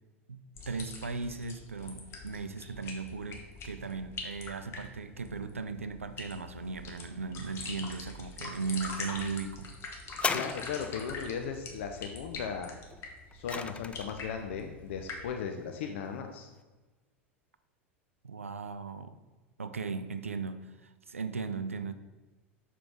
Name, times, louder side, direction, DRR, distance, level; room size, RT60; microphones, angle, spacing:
voice 1, 0.3-9.7 18.2-19.2 19.6-21.9, right 4 dB, 85° right, 11 dB, 0.4 m, -37 dB
sound 1, 0.5-15.3, left 3 dB, 35° left, 1.2 m, -44 dB
sound 2, 10.1-11.2 12.9-14.3 15.1-15.2, left 5 dB, 15° left, 0.3 m, -35 dB
voice 2, 10.3-12.8 13.3-16.5, left 6 dB, 65° left, 5 dB, 0.5 m, -37 dB
6.8 x 4.6 x 3.6 m, 1.2 s
figure-of-eight pair, 85°, 7 cm